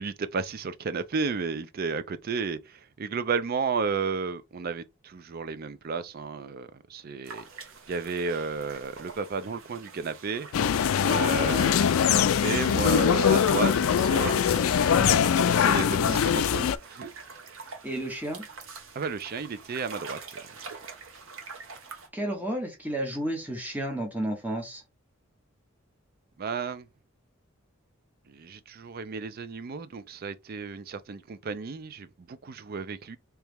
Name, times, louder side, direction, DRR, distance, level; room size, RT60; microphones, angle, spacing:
voice 1, 0.0-17.1 19.0-20.4 26.4-26.9 28.3-33.2, right 5 dB, 45° right, 0.4 m, -33 dB
sound 1, 7.2-22.1, right 4 dB, 70° right, 1.0 m, -45 dB
sound 2, 10.5-16.8, left 8 dB, 80° left, 0.4 m, -22 dB
voice 2, 15.8-16.3 17.8-18.4 22.1-24.8, right 1 dB, 10° right, 1.0 m, -32 dB
3.2 x 3.0 x 3.4 m
head